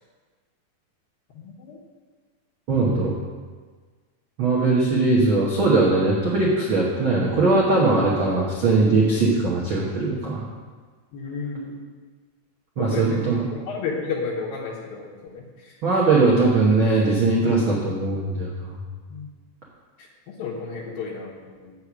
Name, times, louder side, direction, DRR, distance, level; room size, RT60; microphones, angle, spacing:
voice 1, 1.3-1.8 11.1-11.8 12.8-15.8 19.1-19.3 20.0-21.7, left 4 dB, 75° left, -8 dB, 3.0 m, -32 dB
voice 2, 2.7-3.2 4.4-10.4 12.8-13.4 15.8-18.7, right 3 dB, 80° right, -5 dB, 1.1 m, -20 dB
8.2 x 6.6 x 5.9 m, 1.5 s
omnidirectional pair, 4.2 m